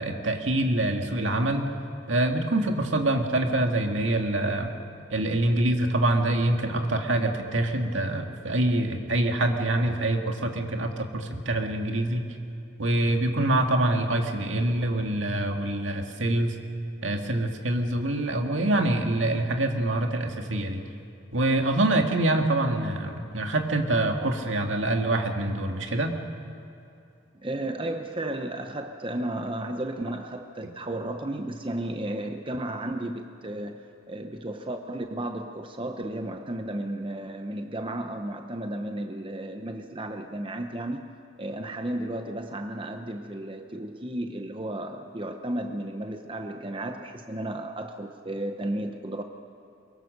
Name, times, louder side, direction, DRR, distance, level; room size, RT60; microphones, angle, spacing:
voice 1, 0.0-1.6 2.1-4.7 5.1-12.3 12.8-16.6 17.0-20.8 21.3-26.1, right 1 dB, 75° right, 3 dB, 2.0 m, -25 dB
voice 2, 27.4-41.1 41.4-49.2, right 1 dB, 25° right, 5 dB, 0.8 m, -33 dB
23.0 x 23.0 x 6.6 m, 2.7 s
head